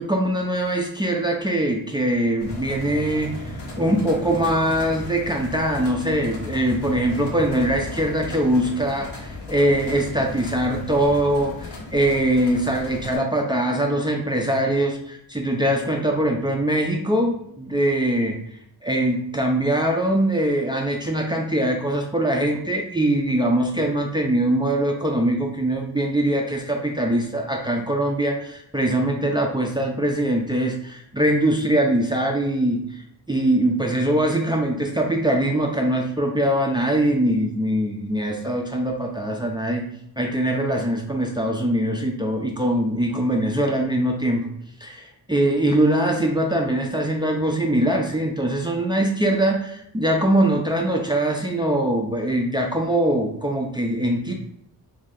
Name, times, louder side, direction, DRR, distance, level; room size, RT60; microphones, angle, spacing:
voice 1, 0.0-3.3 3.8-18.4 18.8-33.0 33.3-39.8 40.2-44.5 44.8-54.3, right 1 dB, 10° right, 1 dB, 0.4 m, -22 dB
sound 1, 2.4-13.2, left 2 dB, 90° left, 1.1 m, -35 dB
3.1 x 2.7 x 3.7 m, 0.71 s
wide cardioid pair, 125°, 39 cm